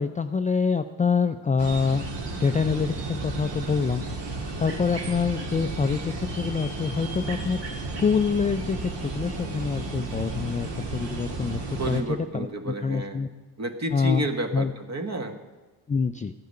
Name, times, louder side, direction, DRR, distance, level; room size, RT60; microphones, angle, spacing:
voice 1, 0.0-2.0 2.4-4.0 4.6-11.6 11.9-12.0 12.3-13.3 13.9-14.2 14.5-14.7 15.9-16.3, left 5 dB, 15° left, 9 dB, 0.4 m, -26 dB
sound 1, 1.6-12.0, right 2 dB, 60° right, 1.8 m, -33 dB
voice 2, 11.8-13.2 13.6-15.4, right 1 dB, 35° right, 7 dB, 1.4 m, -30 dB
13.0 x 9.3 x 5.5 m, 1.2 s
hypercardioid pair, 40°, 49 cm